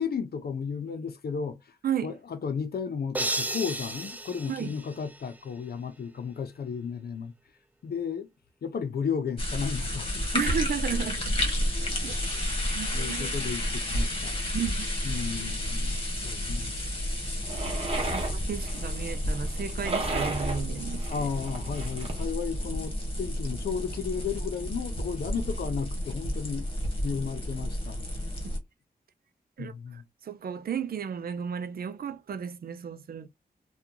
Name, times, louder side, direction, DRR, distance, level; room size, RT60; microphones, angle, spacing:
voice 1, 0.0-1.6 2.0-7.3 7.8-8.3 8.6-10.4 12.9-14.4 15.0-16.7 21.1-26.7 27.0-28.0 29.6-30.0, left 6 dB, 85° left, 0.7 m, -34 dB
sound 1, 3.1-5.5, right 1 dB, 10° right, 0.4 m, -33 dB
sound 2, 9.4-28.6, equal, 35° left, 1.2 m, -31 dB
voice 2, 10.3-11.4 11.8-12.4 12.7-13.3 14.5-14.9 15.3-15.5 18.1-21.3 29.6-33.3, right 7 dB, 70° right, 0.5 m, -34 dB
sound 3, 17.4-22.2, right 2 dB, 40° right, 0.9 m, -35 dB
2.8 x 2.3 x 3.7 m
wide cardioid pair, 155°, 16 cm